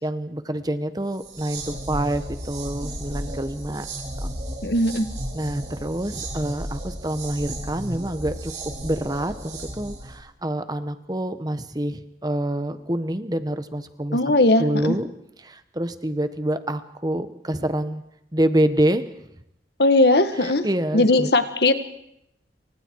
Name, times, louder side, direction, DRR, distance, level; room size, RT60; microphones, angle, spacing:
voice 1, 0.0-3.9 5.3-8.5 8.8-14.2 14.6-15.1 15.4-18.0 18.3-19.0 20.3-21.3, right 1 dB, 20° right, 11 dB, 1.3 m, -26 dB
sound 1, 1.1-10.2, right 1 dB, 40° right, 6.9 m, -34 dB
voice 2, 4.6-5.1 14.1-15.0 19.8-20.7 20.9-21.7, left 2 dB, 65° left, 10 dB, 1.8 m, -18 dB
28.0 x 24.5 x 4.8 m, 0.79 s
head